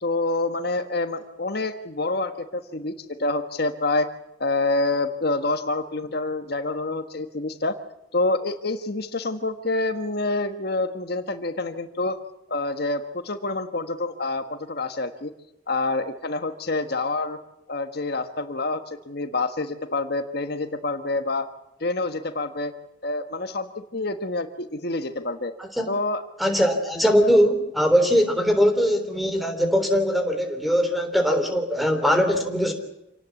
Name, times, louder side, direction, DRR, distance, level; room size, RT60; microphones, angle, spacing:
voice 1, 0.0-2.9 3.2-4.1 4.4-7.8 8.1-12.2 12.5-15.3 15.7-17.4 17.7-21.5 21.8-22.7 23.0-25.5 25.9-26.2, left 2 dB, 55° left, 8 dB, 1.4 m, -27 dB
voice 2, 26.4-32.7, equal, ahead, 6 dB, 3.4 m, -21 dB
27.5 x 18.5 x 8.4 m, 0.86 s
head